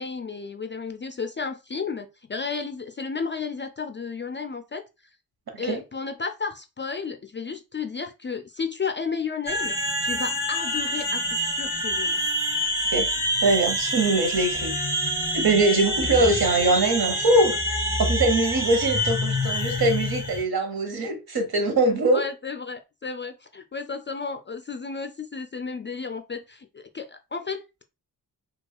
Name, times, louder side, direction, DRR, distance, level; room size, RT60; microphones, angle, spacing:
voice 1, 0.0-4.8 5.6-9.7 10.0-12.2 22.1-27.8, left 5 dB, 30° left, 0.4 m, -33 dB
sound 1, 9.5-20.4, equal, 5° right, 1.2 m, -26 dB
voice 2, 13.4-14.7 15.3-17.6 18.0-22.2, right 2 dB, 60° right, 1.1 m, -22 dB
4.4 x 2.4 x 2.3 m
cardioid pair, 45°, 42 cm